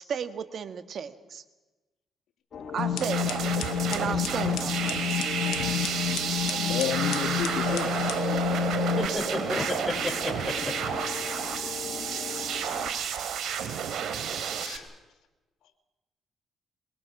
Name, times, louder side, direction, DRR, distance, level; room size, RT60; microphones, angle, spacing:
voice 1, 0.0-1.4 2.7-3.5 3.9-4.8, right 7 dB, 55° right, 11 dB, 1.6 m, -34 dB
sound 1, 2.5-12.9, left 6 dB, 50° left, 2.9 m, -39 dB
sound 2, 2.8-9.1, left 8 dB, 90° left, 1.0 m, -30 dB
sound 3, 3.0-14.8, right 8 dB, 75° right, 2.6 m, -31 dB
voice 2, 6.5-7.9 12.3-12.4 14.6-14.9, left 9 dB, 75° left, 1 dB, 2.1 m, -32 dB
voice 3, 8.8-11.2, left 2 dB, 10° left, 2 dB, 5.7 m, -33 dB
25.0 x 22.5 x 6.1 m, 1.1 s
cardioid pair, 90°, 0 cm